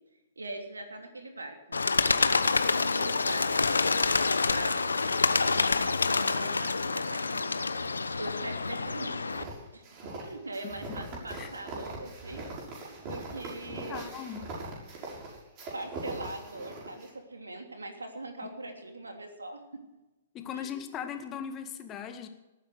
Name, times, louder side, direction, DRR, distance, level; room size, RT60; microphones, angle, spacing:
voice 1, 0.4-3.7 4.5-5.3 5.8-9.2 9.7-9.8 10.2-12.4 12.8-14.1 15.7-19.6 20.5-20.7, right 2 dB, 85° right, 4 dB, 3.1 m, -42 dB
Bird, 1.7-9.4, left 4 dB, 85° left, 1.0 m, -27 dB
sound 1, 9.3-17.1, right 2 dB, 35° right, 6.4 m, -41 dB
voice 2, 10.9-11.5 13.9-14.5 18.4-18.5 20.3-22.3, left 8 dB, 25° left, 7 dB, 1.9 m, -39 dB
19.0 x 9.4 x 6.6 m, 1.1 s
figure-of-eight pair, 120°, 0 cm